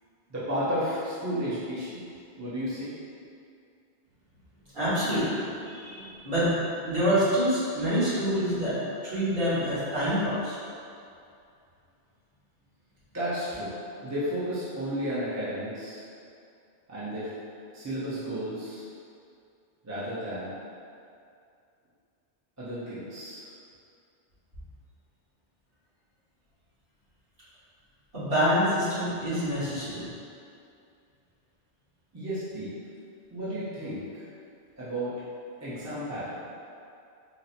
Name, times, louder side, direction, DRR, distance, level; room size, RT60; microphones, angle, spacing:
voice 1, 0.3-2.0 2.4-2.9 13.1-13.8 14.0-16.0 16.9-17.3 17.7-18.8 19.8-20.5 22.6-23.5 32.1-32.7 33.3-34.3 34.8-35.2 35.6-36.5, equal, 15° right, -11 dB, 0.7 m, -33 dB
voice 2, 4.7-6.6 6.8-8.8 9.0-10.6 28.1-30.1, equal, 50° right, -13 dB, 1.7 m, -26 dB
4.1 x 2.1 x 4.2 m, 2.5 s
omnidirectional pair, 1.2 m